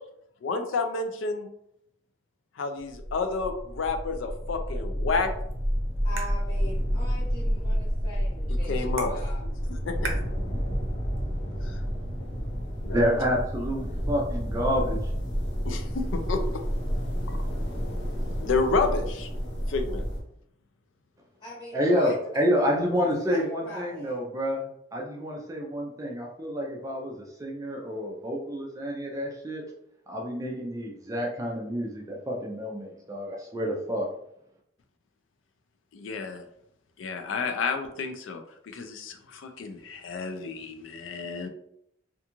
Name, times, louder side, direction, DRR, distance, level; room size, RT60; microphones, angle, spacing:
voice 1, 0.4-1.5 2.6-5.3 8.6-9.1 9.7-10.1 11.6-11.8 12.8-13.2 15.6-16.4 17.3-17.4 18.4-19.3 19.7-20.0 35.9-36.4 37.0-41.5, left 4 dB, 85° left, 6 dB, 0.4 m, -30 dB
sound 1, 2.9-20.2, equal, 60° left, 0.8 m, -30 dB
sound 2, 5.3-11.3, right 3 dB, 90° right, 0.6 m, -43 dB
voice 2, 6.0-9.4 21.4-24.2, left 1 dB, 25° left, -10 dB, 0.8 m, -41 dB
voice 3, 12.9-15.0 21.7-29.6 30.1-34.1, equal, 15° right, -1 dB, 0.4 m, -28 dB
2.5 x 2.3 x 2.9 m, 0.73 s
head